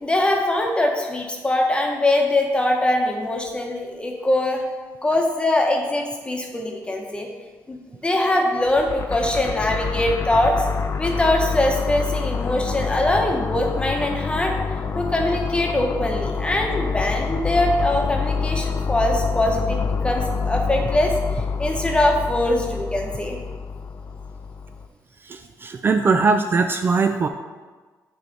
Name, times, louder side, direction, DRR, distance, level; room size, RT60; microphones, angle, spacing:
voice 1, 0.0-4.6 5.0-7.3 7.7-10.7 11.0-23.4, left 1 dB, 15° left, 1 dB, 0.9 m, -22 dB
sound 1, 8.7-24.9, left 5 dB, 45° left, 0.4 m, -27 dB
voice 2, 25.2-27.3, right 4 dB, 35° right, 6 dB, 0.3 m, -20 dB
9.4 x 3.2 x 3.9 m, 1.4 s
cardioid pair, 120°, 6 cm